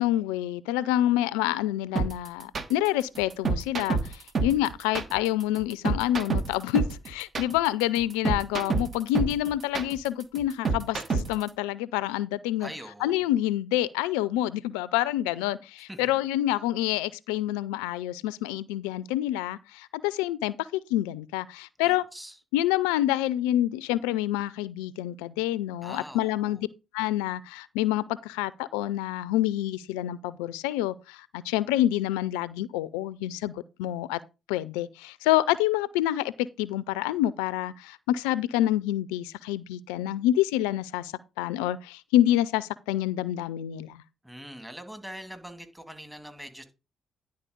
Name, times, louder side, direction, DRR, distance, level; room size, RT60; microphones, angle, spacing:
voice 1, 0.0-12.7 13.0-22.0 22.5-26.7 26.9-34.2 34.5-44.0, left 14 dB, 85° left, 0.3 m, -27 dB
sound 1, 2.0-11.5, right 4 dB, 50° right, 1.3 m, -28 dB
voice 2, 12.6-13.2 15.9-16.2 21.8-22.4 25.8-26.6 44.2-46.6, equal, 5° right, 2.3 m, -43 dB
10.5 x 4.2 x 5.1 m
hypercardioid pair, 45°, 0 cm